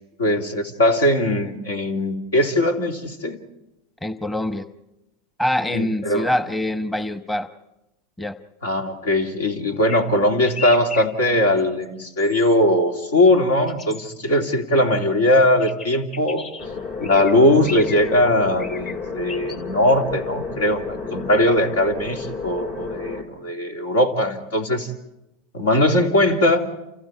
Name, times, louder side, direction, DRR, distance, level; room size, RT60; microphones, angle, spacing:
voice 1, 0.2-3.4 5.7-6.3 8.6-16.5 17.0-24.9 25.5-26.7, left 1 dB, 80° left, 4 dB, 2.9 m, -20 dB
voice 2, 4.0-4.7 5.4-7.5 8.2-8.4, left 1 dB, 10° left, 10 dB, 1.1 m, -24 dB
sound 1, 9.9-10.0 10.4-11.1 11.6-11.8 12.2-12.5 13.7-14.1 15.6-16.7 17.0-17.3 17.6-18.2 18.6-19.0 19.3-19.6, left 5 dB, 40° left, 2.4 m, -36 dB
sound 2, 16.6-23.2, left 4 dB, 60° left, 4.4 m, -32 dB
29.5 x 28.5 x 4.7 m, 0.94 s
hypercardioid pair, 90°, 0 cm